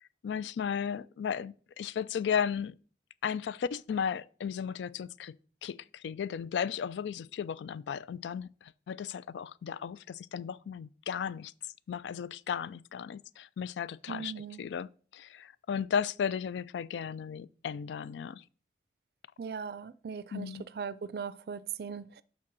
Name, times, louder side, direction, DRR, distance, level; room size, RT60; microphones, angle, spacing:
voice 1, 0.2-2.7 3.2-5.4 5.6-11.5 11.9-18.4 20.3-20.7, left 7 dB, 85° left, 0.3 m, -35 dB
voice 2, 14.1-14.6 19.4-22.2, right 6 dB, 60° right, 0.4 m, -39 dB
7.4 x 3.5 x 6.1 m
head